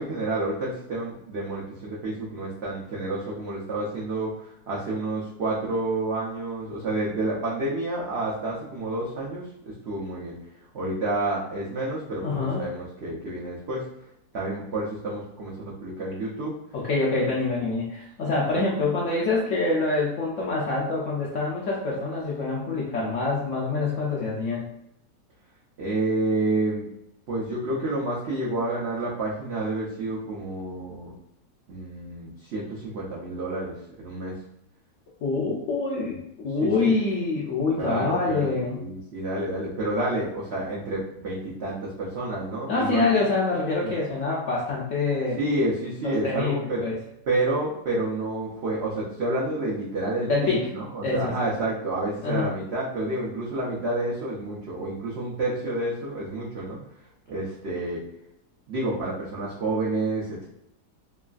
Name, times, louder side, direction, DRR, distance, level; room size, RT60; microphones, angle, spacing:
voice 1, 0.0-10.3 10.7-13.8 14.3-16.5 17.3-17.4 25.8-26.9 27.3-31.1 31.7-34.3 36.6-36.9 37.8-43.2 43.8-43.9 45.4-46.8 47.3-56.8 57.3-58.0 58.7-60.4, right 2 dB, 75° right, -5 dB, 0.6 m, -29 dB
voice 2, 12.2-12.7 16.7-24.7 35.2-38.8 42.7-45.4 46.0-47.0 50.3-50.7 51.0-51.5 52.2-52.5, left 3 dB, 70° left, -5 dB, 0.7 m, -26 dB
3.1 x 2.2 x 2.4 m, 0.81 s
omnidirectional pair, 1.8 m